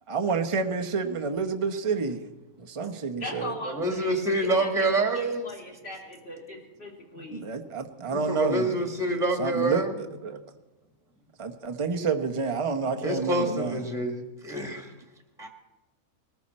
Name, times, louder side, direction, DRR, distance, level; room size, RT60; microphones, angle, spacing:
voice 1, 0.1-2.2 2.6-3.6 7.2-8.7 9.4-9.8 10.2-10.4 11.4-13.8, right 4 dB, 25° right, 6 dB, 0.9 m, -29 dB
voice 2, 3.2-7.4, left 1 dB, 45° left, -2 dB, 3.7 m, -40 dB
voice 3, 3.7-5.5 8.1-9.9 13.0-14.9 15.4-15.5, right 2 dB, ahead, 3 dB, 1.6 m, -27 dB
20.5 x 14.0 x 4.3 m, 1.1 s
omnidirectional pair, 1.5 m